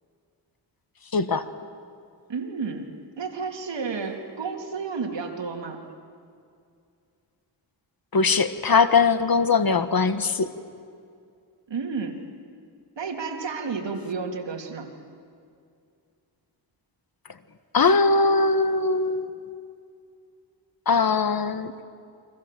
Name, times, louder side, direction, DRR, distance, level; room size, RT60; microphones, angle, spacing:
voice 1, 1.1-1.5 8.1-10.5 17.7-19.3 20.9-21.8, left 4 dB, 50° left, 10 dB, 1.5 m, -21 dB
voice 2, 2.3-5.8 11.7-12.2 13.0-14.9, right 5 dB, 65° right, 3 dB, 3.1 m, -31 dB
29.5 x 24.5 x 7.7 m, 2.4 s
wide cardioid pair, 105°, 46 cm